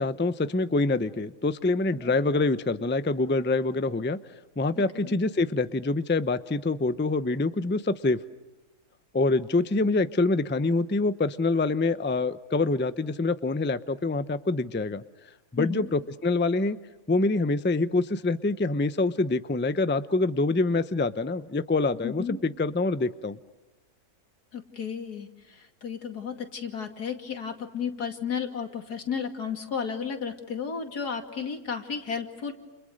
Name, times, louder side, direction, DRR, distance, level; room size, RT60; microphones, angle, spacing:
voice 1, 0.0-4.2 4.6-8.2 9.1-15.0 15.5-16.8 17.1-23.4, left 3 dB, 15° left, 12 dB, 0.5 m, -25 dB
voice 2, 4.7-5.1 15.6-15.9 22.0-22.4 24.5-32.5, left 6 dB, 85° left, 5 dB, 3.0 m, -33 dB
30.0 x 29.5 x 6.5 m, 1.1 s
omnidirectional pair, 1.6 m